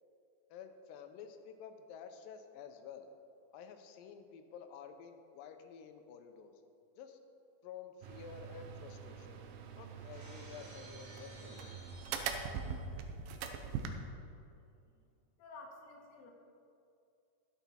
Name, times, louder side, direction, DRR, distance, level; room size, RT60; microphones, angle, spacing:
voice 1, 0.5-3.1 3.5-6.5 7.0-7.2 7.6-9.4 9.8-11.7, left 7 dB, 80° left, 7 dB, 2.3 m, -51 dB
sound 1, 8.0-13.9, right 6 dB, 80° right, 2.4 m, -43 dB
Shatter, 10.1-12.9, right 2 dB, 45° right, 2.4 m, -56 dB
voice 2, 15.4-16.3, left 3 dB, 65° left, 0 dB, 2.5 m, -52 dB
12.0 x 8.2 x 4.2 m, 2.5 s
omnidirectional pair, 4.1 m